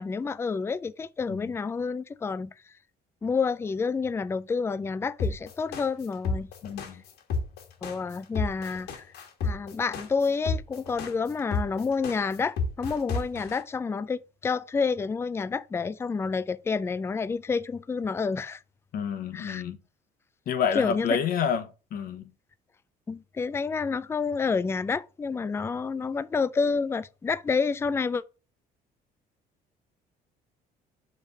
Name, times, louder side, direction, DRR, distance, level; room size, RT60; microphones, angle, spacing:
voice 1, 0.0-2.5 3.2-6.5 7.8-9.0 9.4-18.6 19.3-19.6 20.7-21.2 23.1-28.2, left 5 dB, 15° left, 0.3 m, -29 dB
sound 1, 5.2-13.6, left 4 dB, 75° left, 1.5 m, -31 dB
voice 2, 6.6-7.0 18.9-19.8 20.5-22.3, left 7 dB, 60° left, 0.9 m, -29 dB
5.4 x 3.3 x 5.7 m
cardioid pair, 110°, 17 cm